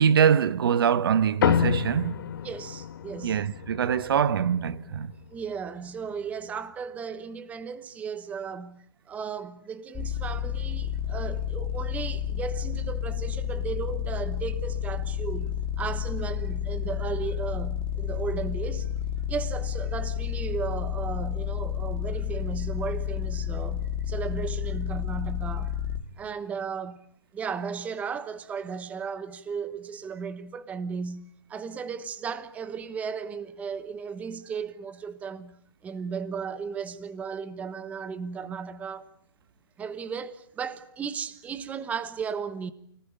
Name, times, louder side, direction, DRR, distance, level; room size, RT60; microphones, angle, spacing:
voice 1, 0.0-2.2 3.2-5.1, right 8 dB, 60° right, 1.2 m, -23 dB
sound 1, 1.4-6.1, left 9 dB, 50° left, 1.7 m, -30 dB
voice 2, 2.4-3.4 5.3-18.9 19.3-25.7 26.2-27.0 27.3-35.6 35.8-39.0 39.8-42.7, right 6 dB, 10° right, 1.1 m, -35 dB
sound 2, 9.9-26.0, left 8 dB, 10° left, 3.0 m, -31 dB
29.5 x 19.5 x 8.8 m
hypercardioid pair, 155°, 14 cm